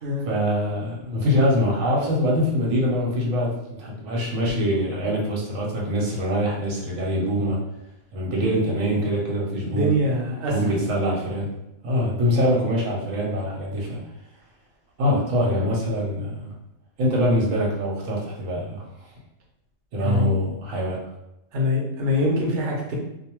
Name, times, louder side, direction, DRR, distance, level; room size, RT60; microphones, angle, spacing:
voice 1, 0.2-7.6 8.1-9.9 10.5-11.5 11.8-14.0 15.0-16.5 17.0-18.8 19.9-21.0, equal, 90° right, -2 dB, 1.1 m, -24 dB
voice 2, 9.5-10.5 20.0-20.3 21.5-22.9, left 1 dB, 55° right, -2 dB, 0.8 m, -24 dB
2.5 x 2.2 x 2.9 m, 0.87 s
omnidirectional pair, 1.3 m